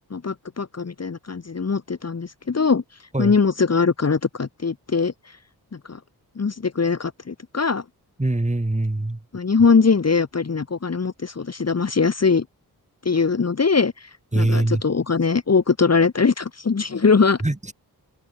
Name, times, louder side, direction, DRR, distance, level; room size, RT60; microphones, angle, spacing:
voice 1, 0.1-2.8 3.2-5.1 5.9-6.0 6.4-7.8 9.3-12.4 13.0-13.9 14.3-17.4, left 5 dB, 40° left, 1.3 m, -21 dB
voice 2, 8.2-9.2 14.3-14.8 17.4-17.6, right 2 dB, 15° right, 2.7 m, -22 dB
cardioid pair, 50°, 39 cm